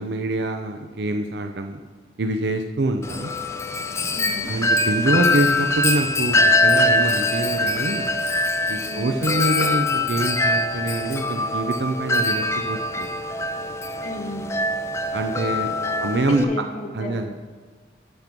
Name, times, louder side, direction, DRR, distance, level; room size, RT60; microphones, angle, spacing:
voice 1, 0.0-1.8 2.2-3.3 4.5-8.1 8.7-13.1 15.1-15.7 16.0-16.5 16.9-17.4, right 2 dB, 70° right, 5 dB, 0.6 m, -25 dB
Wind chime, 3.0-16.4, left 2 dB, 15° left, 0.4 m, -23 dB
voice 2, 4.1-4.5 8.8-9.2 14.0-14.5 15.8-17.3, left 1 dB, 45° left, -1 dB, 1.1 m, -33 dB
12.0 x 5.2 x 5.9 m, 1.5 s
head